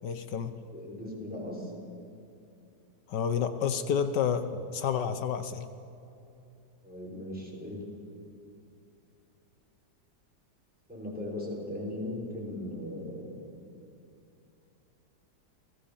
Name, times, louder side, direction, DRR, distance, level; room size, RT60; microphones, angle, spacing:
voice 1, 0.0-0.5 3.1-4.5 4.7-5.7, left 7 dB, 80° left, 10 dB, 1.6 m, -29 dB
voice 2, 0.7-1.7 6.8-7.8 10.9-13.4, left 1 dB, 5° right, -3 dB, 5.8 m, -38 dB
29.0 x 19.0 x 7.2 m, 2.7 s
omnidirectional pair, 1.8 m